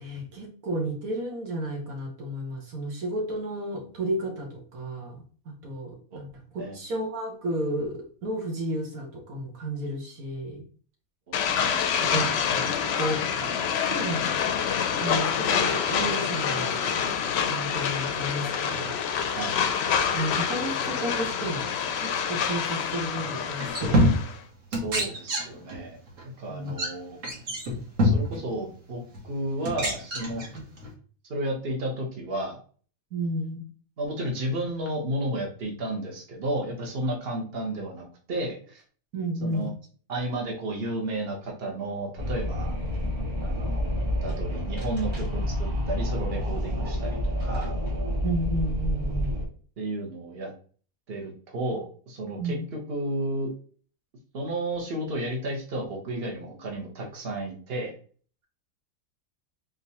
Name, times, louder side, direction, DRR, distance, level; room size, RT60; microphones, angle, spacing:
voice 1, 0.0-5.2 5.5-6.4 6.7-10.6 12.0-14.2 15.0-16.8 17.4-18.9 20.1-21.7 22.0-24.0 26.5-26.7 33.1-33.7 39.1-39.7 48.2-49.4 52.4-52.6, right 1 dB, 85° right, 0 dB, 1.6 m, -32 dB
sound 1, 11.3-24.4, left 7 dB, 65° left, 0.7 m, -27 dB
voice 2, 11.3-12.1 19.3-19.5 24.7-26.0 26.4-27.2 28.0-30.5 31.3-32.6 34.0-38.8 39.4-39.7 40.1-42.7 43.4-43.9 44.2-47.7 49.8-50.5 51.1-53.5 54.3-57.9, right 1 dB, 45° right, 0 dB, 1.3 m, -32 dB
sound 2, 23.2-23.3 23.6-24.5 24.7-25.8 26.1-26.2 26.7-26.9 27.2-28.4 29.1-29.2 29.6-30.9, equal, 65° right, 1.7 m, -25 dB
Wind, 42.2-49.4, equal, 20° right, 1.3 m, -29 dB
3.8 x 3.8 x 2.8 m, 0.42 s
omnidirectional pair, 1.4 m